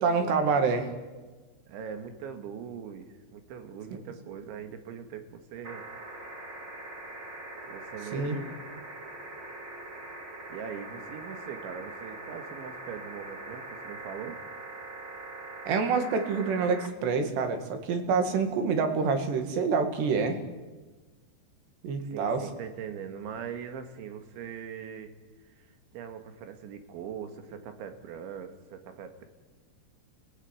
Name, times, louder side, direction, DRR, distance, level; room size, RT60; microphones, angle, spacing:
voice 1, 0.0-0.9 8.1-8.4 15.7-20.4 21.8-22.4, right 5 dB, 70° right, 6 dB, 4.1 m, -27 dB
voice 2, 1.7-5.8 7.6-8.7 10.5-14.4 22.0-25.1 25.5-29.3, right 7 dB, 85° right, 7 dB, 4.2 m, -41 dB
sound 1, 5.6-16.9 18.3-18.4, right 2 dB, 25° right, 3.7 m, -42 dB
28.5 x 16.0 x 9.5 m, 1.3 s
omnidirectional pair, 5.2 m